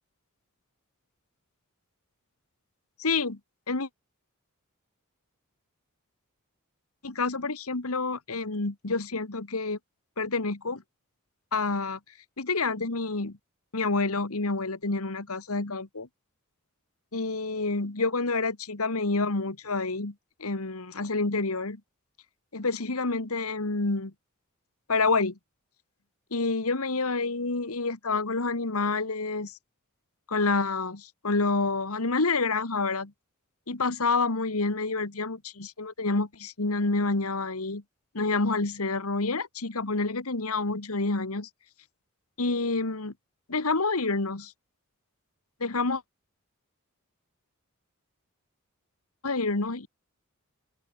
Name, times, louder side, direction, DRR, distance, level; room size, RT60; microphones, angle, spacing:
voice 1, 3.0-3.4 3.7-3.9 7.0-9.8 10.2-10.8 11.5-12.0 12.4-13.4 13.7-16.1 17.1-20.1 20.4-21.8 22.5-24.1 24.9-25.4 26.3-29.6 30.3-33.1 33.7-37.8 38.1-41.5 42.4-43.1 43.5-44.5 45.6-46.0 49.2-49.9, left 3 dB, 75° left, 1.8 m, -28 dB
open air
head